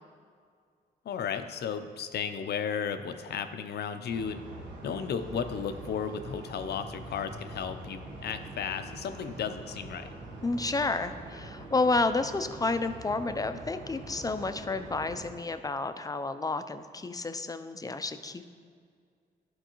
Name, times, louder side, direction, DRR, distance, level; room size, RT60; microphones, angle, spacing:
voice 1, 1.0-4.4 4.8-10.1, left 7 dB, 70° left, 9 dB, 0.5 m, -34 dB
sound 1, 4.1-15.3, right 2 dB, 90° right, 1.0 m, -44 dB
voice 2, 10.4-18.4, left 3 dB, 20° left, 10 dB, 0.4 m, -30 dB
11.5 x 4.6 x 3.0 m, 2.1 s
cardioid pair, 65°, 18 cm